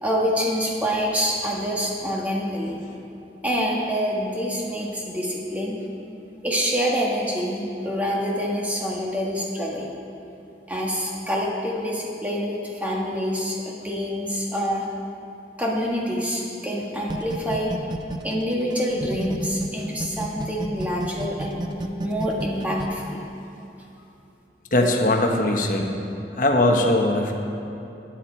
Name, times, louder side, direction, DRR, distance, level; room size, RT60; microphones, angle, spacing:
voice 1, 0.0-2.8 3.4-5.8 6.4-9.9 10.7-14.9 15.6-17.7 18.2-21.6 22.0-23.2, equal, 10° right, -3 dB, 1.4 m, -26 dB
sound 1, 17.1-19.7 20.0-22.9, right 2 dB, 25° right, 0.5 m, -30 dB
voice 2, 24.7-25.9 26.4-27.3, left 1 dB, 50° left, 2 dB, 1.1 m, -20 dB
13.0 x 9.2 x 4.4 m, 2.8 s
head